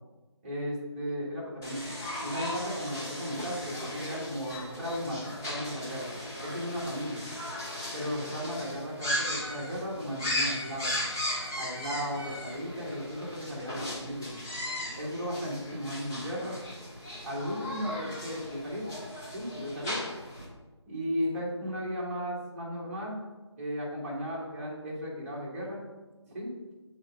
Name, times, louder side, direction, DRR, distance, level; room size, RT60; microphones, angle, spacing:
voice 1, 0.4-6.1 6.4-7.2 7.9-11.0 11.6-14.3 15.0-16.5 17.2-18.9 19.3-20.0 20.9-23.2 23.6-25.8 26.3-26.5, equal, 30° right, -4 dB, 2.2 m, -35 dB
sound 1, 1.6-20.4, left 1 dB, 5° left, 0.5 m, -37 dB
6.3 x 4.5 x 5.3 m, 1.2 s
figure-of-eight pair, 165°, 15 cm